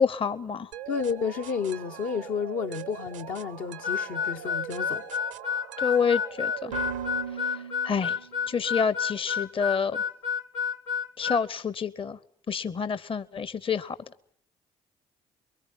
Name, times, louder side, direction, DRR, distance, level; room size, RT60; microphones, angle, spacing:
voice 1, 0.0-0.7 5.8-6.7 7.4-7.5 7.8-8.2 8.5-10.0 11.2-12.2 12.5-14.0, left 6 dB, 35° left, 0.9 m, -27 dB
sound 1, 0.7-8.5, right 9 dB, 90° right, 0.9 m, -40 dB
voice 2, 0.9-5.0, left 6 dB, 65° left, 1.0 m, -31 dB
Harmonica, 3.8-11.4, left 7 dB, 85° left, 0.9 m, -30 dB
23.0 x 20.5 x 7.4 m
hypercardioid pair, 50°, 16 cm